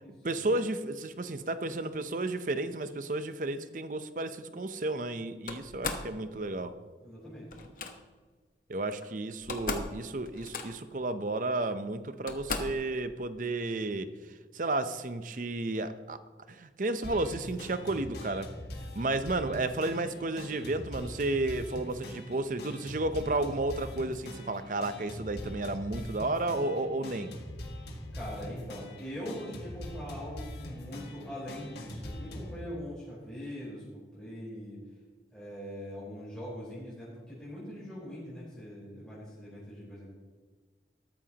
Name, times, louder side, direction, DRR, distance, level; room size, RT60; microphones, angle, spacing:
voice 1, 0.2-6.7 8.7-14.1 14.5-16.2 16.5-18.5 18.9-27.3, right 2 dB, 45° right, 11 dB, 0.7 m, -32 dB
Slam, 5.5-6.1 7.5-7.9 9.0-9.1 9.3-10.0 10.2-10.9 11.7-11.8 12.3-12.8, left 3 dB, 50° left, 1.1 m, -36 dB
voice 2, 7.0-7.6 28.1-33.8 34.1-34.8 35.3-40.1, equal, 5° left, -10 dB, 4.1 m, -42 dB
sound 1, 17.0-32.6, left 1 dB, 70° left, 1.8 m, -43 dB
13.5 x 12.5 x 2.9 m, 1.4 s
head